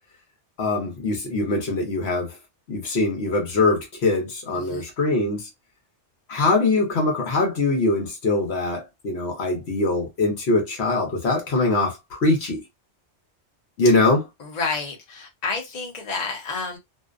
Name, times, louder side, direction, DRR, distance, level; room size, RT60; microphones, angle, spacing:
voice 1, 0.6-2.3 2.7-5.5 6.3-12.6 13.8-14.2, left 2 dB, 65° left, 1.1 m, -22 dB
voice 2, 4.5-4.9 14.4-16.8, left 4 dB, 40° left, 0.8 m, -30 dB
2.6 x 2.1 x 2.4 m
omnidirectional pair, 1.2 m